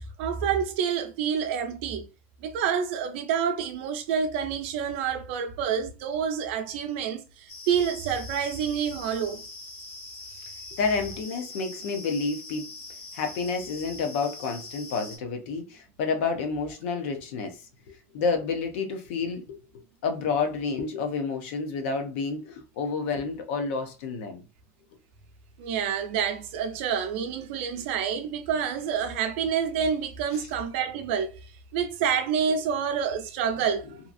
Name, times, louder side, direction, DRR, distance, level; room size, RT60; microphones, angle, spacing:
voice 1, 0.2-2.1 2.4-9.4 25.6-34.0, right 7 dB, 65° right, 0.6 m, -28 dB
sound 1, 7.5-15.2, left 3 dB, 50° left, 1.4 m, -43 dB
voice 2, 10.8-12.7 13.1-17.6 17.9-19.6 20.0-24.4, left 4 dB, 70° left, 0.7 m, -29 dB
2.8 x 2.5 x 2.5 m
cardioid pair, 180°, 7 cm